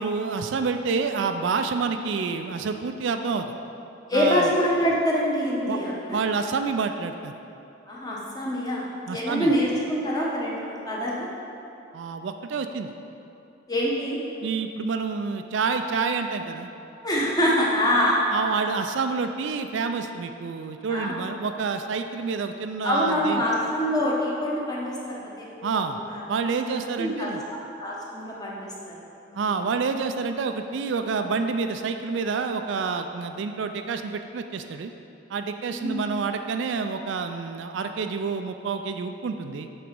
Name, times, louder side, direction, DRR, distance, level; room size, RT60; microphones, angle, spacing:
voice 1, 0.0-3.5 4.1-4.5 5.7-5.8 6.1-7.4 9.1-9.5 11.9-12.9 14.4-16.7 18.3-23.4 25.6-26.0 26.3-27.4 29.3-34.9 35.3-39.7, right 5 dB, 65° right, 7 dB, 0.3 m, -28 dB
voice 2, 4.1-6.2 7.9-11.3 13.7-14.2 17.0-18.1 20.9-21.3 22.8-26.2 26.6-27.3 27.8-28.9 29.3-29.5 35.6-36.0, equal, 20° left, -4 dB, 1.0 m, -25 dB
7.7 x 4.0 x 5.2 m, 2.8 s
head